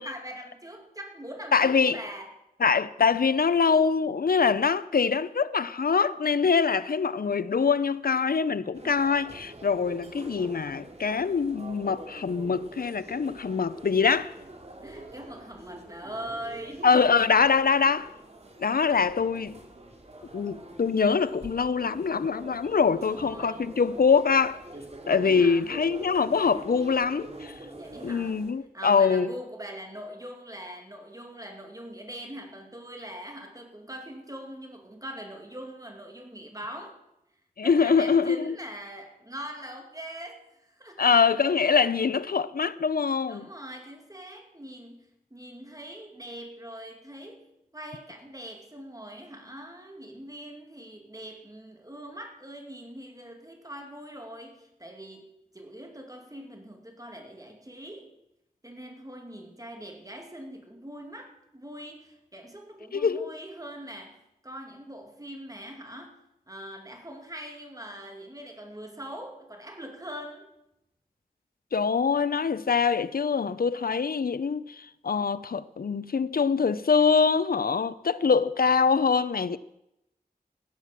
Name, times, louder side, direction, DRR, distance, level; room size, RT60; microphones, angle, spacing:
voice 1, 0.0-2.4 14.8-16.9 22.8-23.7 25.1-25.7 27.7-28.4 28.7-37.0 37.6-41.1 43.3-58.1 58.6-66.2 66.5-70.5, right 1 dB, 25° right, 2.4 m, -42 dB
voice 2, 1.5-2.0 2.6-14.3 16.8-18.1 18.6-19.6 20.3-24.6 25.1-27.5 28.0-29.3 37.6-38.5 41.0-43.5 62.9-63.3 71.7-79.6, left 5 dB, 85° left, 0.6 m, -24 dB
sound 1, 8.7-28.5, right 2 dB, 45° right, 2.6 m, -45 dB
15.5 x 10.0 x 7.4 m
wide cardioid pair, 50°, 15 cm